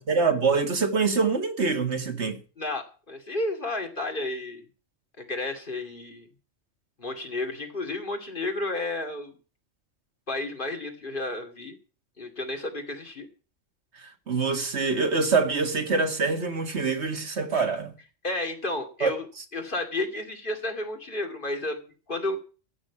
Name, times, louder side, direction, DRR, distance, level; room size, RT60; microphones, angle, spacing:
voice 1, 0.0-2.4 14.0-17.9 19.0-19.1, right 4 dB, 65° right, 2.0 m, -25 dB
voice 2, 2.6-4.6 5.2-6.3 7.0-9.3 10.3-11.8 12.2-13.3 18.2-19.3 19.5-22.4, left 2 dB, 45° left, 2.7 m, -32 dB
15.0 x 6.3 x 8.6 m
omnidirectional pair, 1.3 m